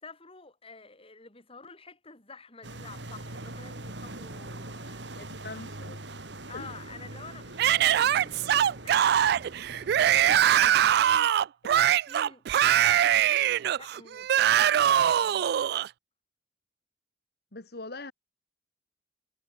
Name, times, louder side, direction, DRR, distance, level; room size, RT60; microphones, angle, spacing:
voice 1, 0.0-5.1 6.5-9.0 9.8-11.3 11.8-13.5 13.8-15.6, left 4 dB, 35° left, 4.6 m, -49 dB
sound 1, 2.6-10.6, right 2 dB, 80° right, 5.2 m, -42 dB
voice 2, 5.2-6.0 6.5-6.7 10.3-10.9 11.6-11.9 17.5-18.1, left 2 dB, 60° left, 2.6 m, -43 dB
Yell / Screaming, 7.6-15.9, right 10 dB, 60° right, 0.3 m, -23 dB
head